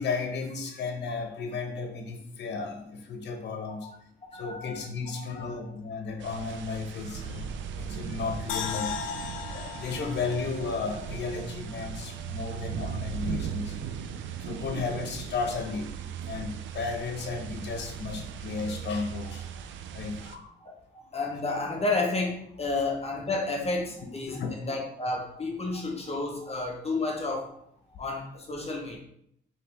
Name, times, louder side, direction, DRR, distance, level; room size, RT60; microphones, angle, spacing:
voice 1, 0.0-3.9 4.3-9.0 9.4-13.8 14.4-15.9 16.3-19.5 19.9-20.5 24.3-24.6, left 4 dB, 60° left, 4 dB, 0.9 m, -34 dB
voice 2, 4.3-4.8 5.1-5.6 20.6-24.4 24.7-27.5 28.0-29.0, left 3 dB, 30° left, 0 dB, 0.9 m, -31 dB
sound 1, 6.2-20.4, right 8 dB, 75° right, 0.4 m, -38 dB
sound 2, 8.5-11.7 12.0-12.1, left 7 dB, 85° left, 0.5 m, -37 dB
4.6 x 3.0 x 3.5 m, 0.72 s
cardioid pair, 90°, 20 cm